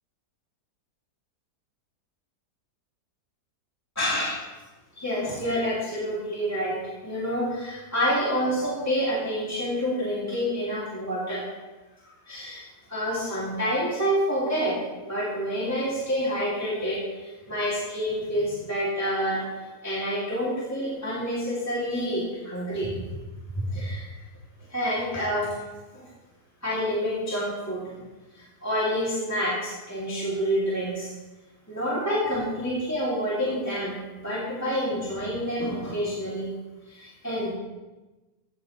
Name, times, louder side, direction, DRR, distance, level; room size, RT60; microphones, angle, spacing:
voice 1, 4.0-4.4 4.9-11.5 12.3-12.6 12.9-14.8 15.0-19.4 19.8-23.1 23.5-24.2 24.7-25.5 25.9-26.0 26.6-27.9 28.3-31.1 31.7-36.5 36.9-37.5, equal, 10° left, -8 dB, 2.3 m, -28 dB
16.5 x 8.7 x 3.1 m, 1.2 s
omnidirectional pair, 1.9 m